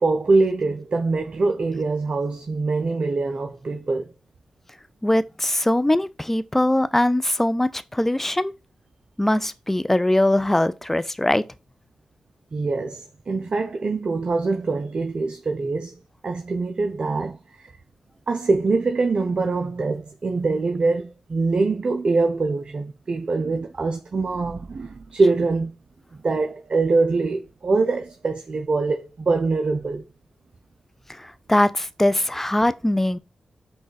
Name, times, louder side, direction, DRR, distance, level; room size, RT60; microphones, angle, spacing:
voice 1, 0.0-4.1 12.5-15.9 16.2-17.7 18.3-25.7 26.1-30.0, right 3 dB, 55° right, 0.5 m, -23 dB
voice 2, 5.0-8.5 9.2-11.4 31.2-33.2, left 1 dB, 15° left, 0.4 m, -21 dB
5.2 x 2.3 x 4.0 m
supercardioid pair, 40°, 2 cm